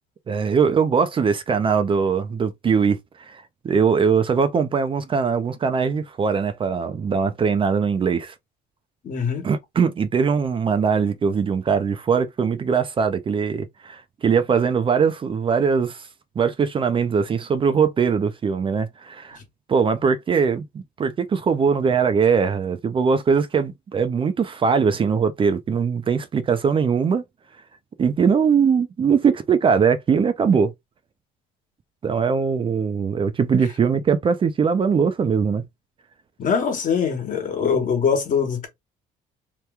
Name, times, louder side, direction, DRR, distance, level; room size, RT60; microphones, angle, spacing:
voice 1, 0.3-8.3 9.4-16.1 16.4-19.4 19.7-27.2 28.0-30.7 32.0-35.6, right 6 dB, 30° right, 0.5 m, -21 dB
voice 2, 9.0-9.5 19.3-19.4 36.4-38.7, left 6 dB, 50° left, 1.2 m, -23 dB
3.0 x 2.2 x 3.3 m
cardioid pair, 110°, 17 cm